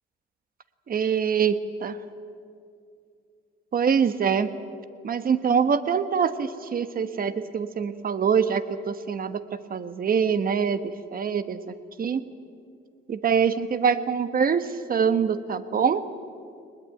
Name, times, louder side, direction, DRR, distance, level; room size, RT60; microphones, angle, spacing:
voice 1, 0.9-2.0 3.7-4.5 5.0-12.2 13.1-16.0, right 6 dB, 45° right, 11 dB, 1.2 m, -24 dB
20.5 x 20.0 x 9.1 m, 2.4 s
cardioid pair, 90°, 20 cm